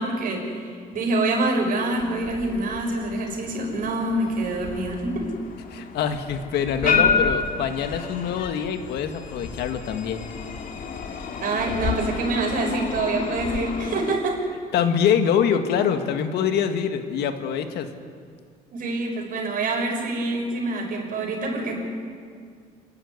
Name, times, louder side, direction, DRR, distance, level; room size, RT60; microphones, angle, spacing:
voice 1, 0.0-5.3 6.8-7.2 11.4-14.5 18.7-21.8, right 2 dB, 55° right, 0 dB, 6.3 m, -26 dB
sound 1, 1.9-14.2, left 5 dB, 55° left, 2.3 m, -30 dB
voice 2, 5.7-10.3 14.7-17.9, left 8 dB, 75° left, 7 dB, 1.9 m, -24 dB
28.5 x 12.0 x 9.8 m, 2.1 s
cardioid pair, 110°, 17 cm